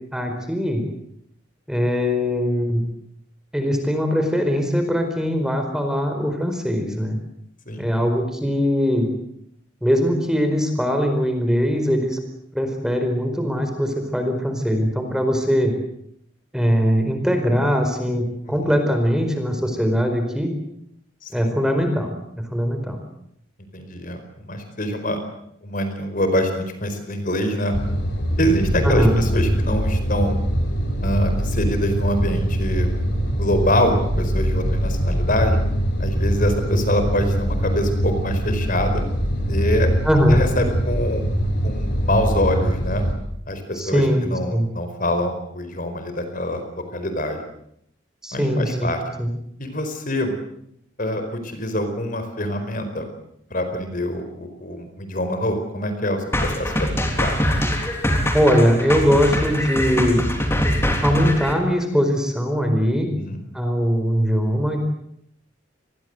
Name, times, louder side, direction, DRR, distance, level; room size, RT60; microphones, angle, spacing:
voice 1, 0.1-0.8 1.7-2.8 3.5-7.2 7.8-9.1 9.8-12.2 12.5-15.7 16.5-20.5 21.3-23.0 28.8-29.2 40.0-40.4 43.8-44.7 48.2-49.3 58.3-60.2 61.0-63.1 63.5-64.8, equal, 5° right, 5 dB, 4.6 m, -21 dB
voice 2, 23.7-25.2 25.6-27.7 28.4-30.4 31.0-32.9 33.4-35.6 36.0-39.0 39.5-39.9 40.3-41.3 41.6-43.0 43.5-47.4 48.3-49.0 49.6-50.3 51.0-53.0 53.5-57.4 63.1-63.4, left 1 dB, 45° left, 8 dB, 4.6 m, -25 dB
sound 1, 27.7-43.1, equal, 60° left, 5.7 m, -23 dB
sound 2, 56.3-61.5, equal, 15° left, 3.6 m, -23 dB
28.5 x 21.0 x 8.0 m, 0.74 s
head